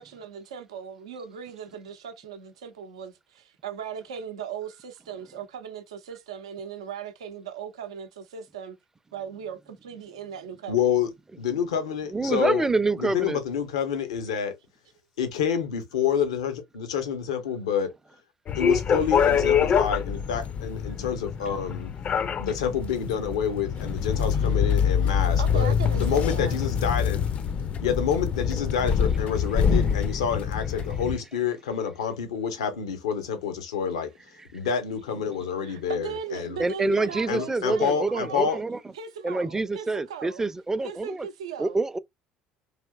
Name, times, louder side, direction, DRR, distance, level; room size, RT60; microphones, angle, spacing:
voice 1, 0.0-8.8 9.1-10.9 24.3-24.5 25.4-26.5 35.6-38.6 38.9-40.5 40.8-41.8, right 7 dB, 90° right, 0.5 m, -38 dB
voice 2, 10.7-11.1 11.4-12.6 13.0-14.5 15.2-17.9 18.6-21.9 22.4-27.2 27.8-34.1 34.5-36.6 37.3-38.6, left 7 dB, 90° left, 0.7 m, -28 dB
voice 3, 12.1-13.4 36.6-38.8 39.2-41.3 41.6-42.0, right 3 dB, 15° right, 0.4 m, -26 dB
sound 1, 18.5-31.1, left 7 dB, 45° left, 0.4 m, -25 dB
3.4 x 2.7 x 2.3 m
hypercardioid pair, 70°, 3 cm